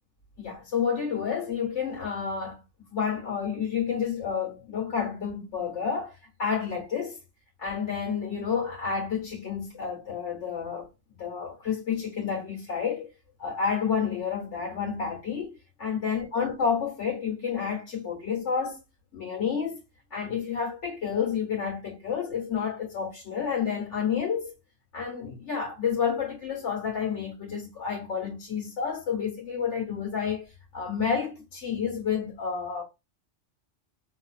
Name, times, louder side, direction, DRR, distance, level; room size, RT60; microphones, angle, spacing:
voice 1, 0.4-2.6 2.9-7.2 7.6-10.9 11.2-13.1 13.4-18.8 19.1-19.8 20.1-24.5 24.9-32.8, left 6 dB, 75° left, 2.0 m, -30 dB
5.1 x 3.6 x 2.5 m
omnidirectional pair, 1.2 m